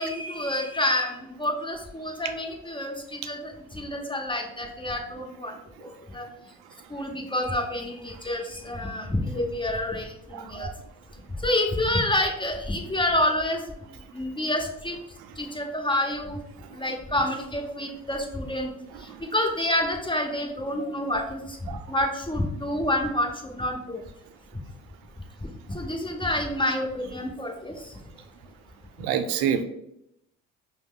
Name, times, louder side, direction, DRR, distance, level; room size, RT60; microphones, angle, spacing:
voice 1, 0.0-6.3 6.9-10.7 11.4-13.6 14.1-15.0 15.4-16.4 16.7-18.7 19.3-24.0 25.4-27.8, left 1 dB, 15° left, 2 dB, 1.0 m, -28 dB
voice 2, 10.3-10.7 16.9-17.0 18.9-19.2 21.7-21.8 29.0-29.6, right 8 dB, 75° right, 8 dB, 0.6 m, -28 dB
5.4 x 2.1 x 3.8 m, 0.79 s
hypercardioid pair, 60°, 38 cm